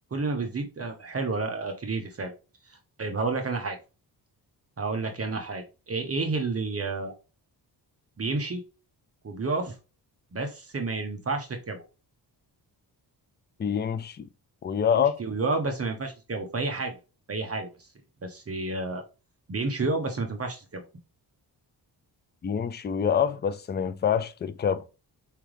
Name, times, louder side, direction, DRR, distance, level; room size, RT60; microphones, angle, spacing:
voice 1, 0.1-2.3 3.0-3.8 4.8-7.1 8.2-8.6 9.2-9.7 10.3-11.8 14.9-17.0 17.3-17.7 18.2-19.0 19.5-20.8, right 3 dB, 35° right, 1.0 m, -30 dB
voice 2, 13.6-14.3 14.6-15.2 22.4-24.8, left 7 dB, 25° left, 0.4 m, -26 dB
4.9 x 3.5 x 3.1 m
wide cardioid pair, 130°, 41 cm